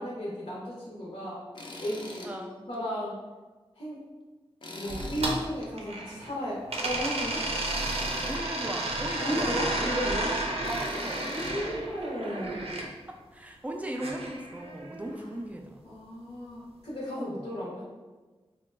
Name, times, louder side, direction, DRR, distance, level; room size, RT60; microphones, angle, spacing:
voice 1, 0.0-1.4 1.8-2.3 2.7-3.2 3.8-4.0 4.7-7.4 9.2-10.3 10.8-12.6 15.8-17.8, equal, 75° left, -7 dB, 0.8 m, -34 dB
Tools, 1.5-2.3 2.7-2.8 4.6-5.7 7.6-8.4 10.6-11.5, left 2 dB, 50° left, 0.5 m, -42 dB
voice 2, 2.2-2.7 7.3-7.8 8.3-9.9 10.2-11.3 12.2-12.3 13.1-15.8 17.2-17.4, right 1 dB, 15° right, 2 dB, 0.4 m, -38 dB
sound 1, 4.9-6.3 6.7-12.9 13.9-15.1, right 2 dB, 75° right, 0.4 m, -32 dB
3.0 x 2.1 x 3.2 m, 1.3 s
wide cardioid pair, 65°, 10 cm